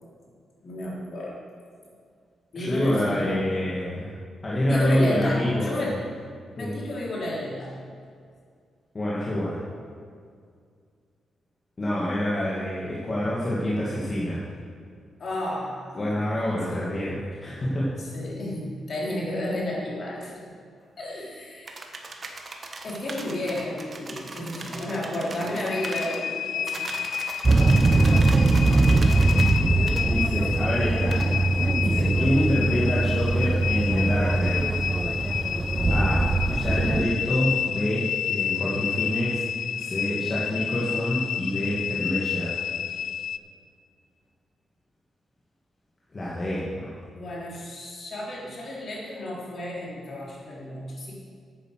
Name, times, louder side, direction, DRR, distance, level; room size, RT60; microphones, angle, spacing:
voice 1, 0.6-1.4 2.5-3.5 4.7-6.0 6.5-7.8 15.2-16.0 16.3-16.8 17.4-17.5 18.0-20.5 21.0-21.8 22.8-27.0 30.3-30.8 31.4-32.2 32.6-32.8 47.1-51.1, left 1 dB, 50° left, -5 dB, 3.5 m, -33 dB
voice 2, 2.6-4.1 4.4-5.9 6.6-6.7 8.9-9.7 11.8-14.5 15.9-17.9 27.9-28.2 30.0-31.2 31.8-34.6 35.9-39.4 39.8-42.6 46.1-47.0, left 1 dB, 30° left, -7 dB, 2.0 m, -27 dB
sound 1, 21.7-26.2 26.7-29.6 29.9-30.0 31.1-31.3, right 3 dB, 35° right, 1.2 m, -39 dB
sound 2, 25.7-43.4, left 9 dB, 75° left, 0.3 m, -30 dB
sound 3, 27.4-37.0, right 2 dB, 20° right, 0.5 m, -22 dB
9.7 x 9.1 x 6.5 m, 2.1 s
cardioid pair, 135°, 0 cm